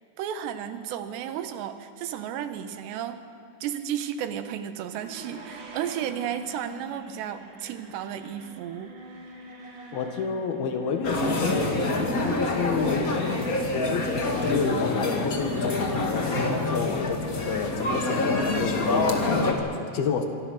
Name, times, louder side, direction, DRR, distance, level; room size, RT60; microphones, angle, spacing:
voice 1, 0.2-3.2 3.6-9.0, right 9 dB, 80° right, 9 dB, 3.3 m, -33 dB
sound 1, 4.8-16.5, right 4 dB, 50° right, 4.1 m, -45 dB
voice 2, 9.9-13.3 13.9-20.3, left 5 dB, 65° left, 6 dB, 3.1 m, -30 dB
sound 2, 11.0-19.5, left 2 dB, 45° left, 1.1 m, -26 dB
25.0 x 24.5 x 6.5 m, 2.5 s
omnidirectional pair, 5.0 m